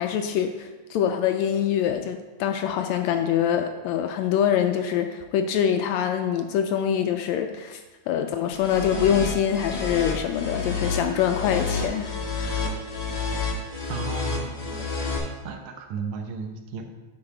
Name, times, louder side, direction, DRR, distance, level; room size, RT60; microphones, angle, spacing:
voice 1, 0.0-7.8 8.1-12.7, left 9 dB, 80° left, 6 dB, 1.7 m, -25 dB
sound 1, 8.6-15.2, left 4 dB, 35° left, 0.5 m, -30 dB
voice 2, 13.9-14.9 15.4-16.9, right 5 dB, 85° right, 5 dB, 2.3 m, -34 dB
8.8 x 5.3 x 4.8 m, 1.2 s
omnidirectional pair, 3.4 m